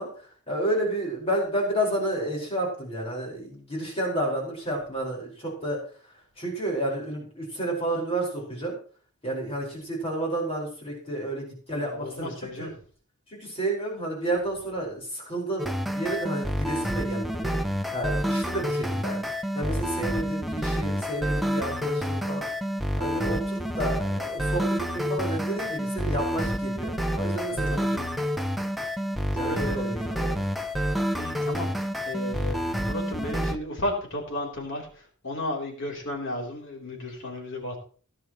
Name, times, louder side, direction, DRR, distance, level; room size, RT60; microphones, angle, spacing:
voice 1, 0.0-5.8 6.0-8.8 9.2-12.7 13.3-17.6 17.9-22.5 23.0-27.7 29.3-30.4, right 1 dB, 30° left, -2 dB, 4.8 m, -31 dB
voice 2, 11.7-12.7 20.2-20.3 27.5-28.1 29.3-29.9 31.0-32.6 32.9-37.8, left 1 dB, 60° left, 0 dB, 3.4 m, -34 dB
sound 1, 15.6-33.6, equal, ahead, 0.8 m, -28 dB
17.0 x 10.0 x 3.1 m, 0.41 s
head